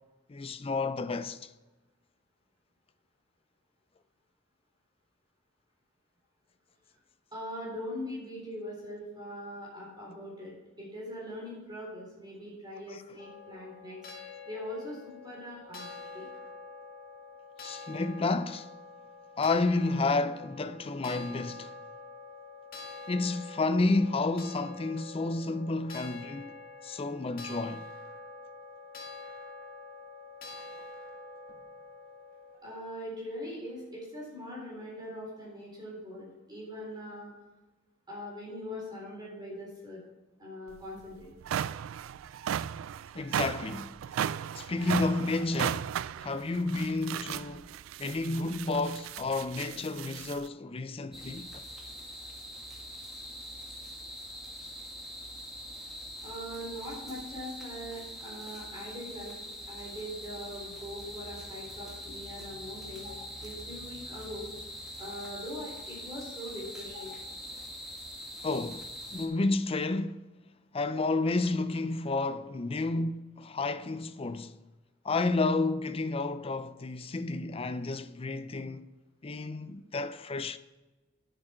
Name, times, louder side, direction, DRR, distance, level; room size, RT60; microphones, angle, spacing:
voice 1, 0.3-1.5 17.6-18.7 19.4-21.7 23.1-27.8 43.1-44.0 44.5-45.9 46.2-51.6 68.4-70.2 70.7-74.6 75.0-78.9 79.2-80.6, left 3 dB, 30° left, 0.5 m, -31 dB
voice 2, 7.3-14.0 14.5-16.3 32.6-37.3 38.1-40.0 40.4-41.3 56.2-59.3 59.7-64.5 65.0-67.3, equal, 20° right, 4.0 m, -41 dB
sound 1, 13.2-32.6, left 3 dB, 50° left, 1.9 m, -46 dB
sound 2, 40.7-40.8 41.2-50.5, right 9 dB, 75° right, 0.3 m, -36 dB
sound 3, 51.1-69.3, equal, ahead, 2.0 m, -43 dB
10.0 x 7.7 x 4.5 m
head